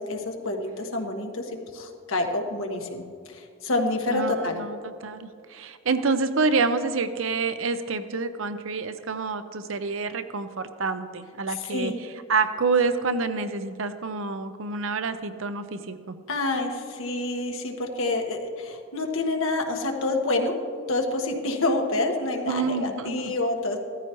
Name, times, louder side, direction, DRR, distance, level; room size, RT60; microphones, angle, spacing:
voice 1, 0.1-4.6 11.6-11.9 16.3-20.5 20.9-23.8, left 2 dB, 85° left, 3 dB, 1.5 m, -28 dB
voice 2, 4.1-11.9 12.3-16.2 22.5-23.3, right 4 dB, 75° right, 10 dB, 0.7 m, -27 dB
16.0 x 14.0 x 3.1 m, 2.2 s
head